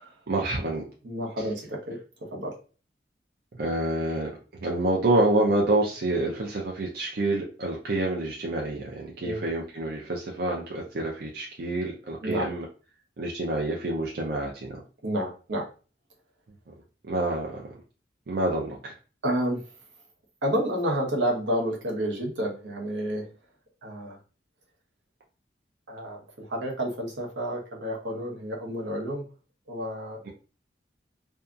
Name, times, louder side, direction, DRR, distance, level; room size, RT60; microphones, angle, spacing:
voice 1, 0.3-0.9 1.4-1.5 3.5-4.3 4.6-12.6 13.2-14.8 16.7-16.8 17.0-17.6 18.3-18.9 30.2-30.3, right 2 dB, 55° right, -1 dB, 0.5 m, -27 dB
voice 2, 1.0-2.0 2.3-2.5 9.2-9.4 12.2-12.5 15.0-15.7 19.2-19.6 20.4-23.2 23.8-24.2 25.9-29.2 29.7-30.2, equal, 85° right, -1 dB, 0.9 m, -30 dB
2.7 x 2.3 x 2.4 m, 0.35 s
head